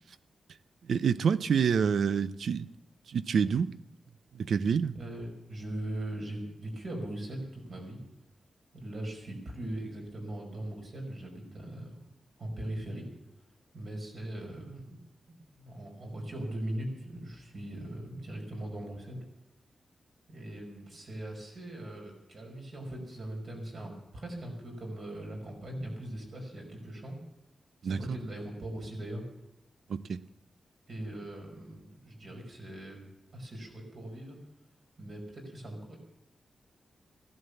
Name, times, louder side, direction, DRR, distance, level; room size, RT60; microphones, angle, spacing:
voice 1, 0.9-2.7 3.1-3.7 4.3-4.9 27.8-28.2 29.9-30.2, right 6 dB, 70° right, 0.6 m, -27 dB
voice 2, 4.9-8.0 8.7-12.0 12.4-13.1 13.7-15.0 15.3-19.2 20.3-27.2 27.8-29.2 30.9-33.1 33.3-34.4 35.0-36.0, right 1 dB, 50° right, 5.3 m, -40 dB
16.5 x 11.0 x 7.0 m
wide cardioid pair, 160°, 0 cm